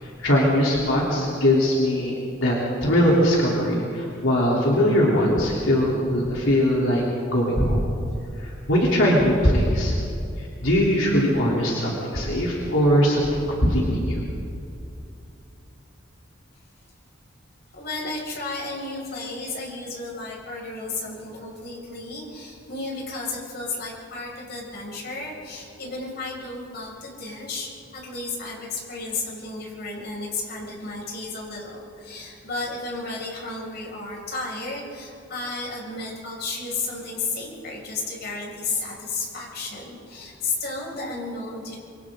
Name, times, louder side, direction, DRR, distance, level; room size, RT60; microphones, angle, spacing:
voice 1, 0.0-7.0 7.3-7.8 8.4-9.9 10.4-14.2, equal, 85° left, -5 dB, 3.6 m, -21 dB
voice 2, 17.7-41.8, left 3 dB, 55° left, -3 dB, 6.4 m, -33 dB
27.5 x 24.0 x 3.9 m, 2.6 s
head